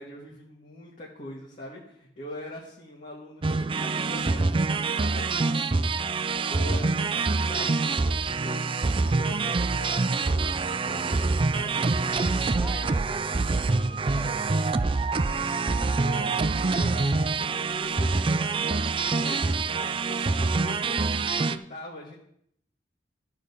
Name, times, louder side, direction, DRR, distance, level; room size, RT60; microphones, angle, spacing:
voice 1, 0.0-12.1 15.8-22.2, left 1 dB, 50° left, -4 dB, 1.9 m, -43 dB
sound 1, 3.4-21.6, right 3 dB, 30° right, 0.4 m, -26 dB
voice 2, 12.5-14.9, right 1 dB, 10° right, -2 dB, 2.0 m, -43 dB
13.0 x 5.2 x 6.7 m, 0.71 s
head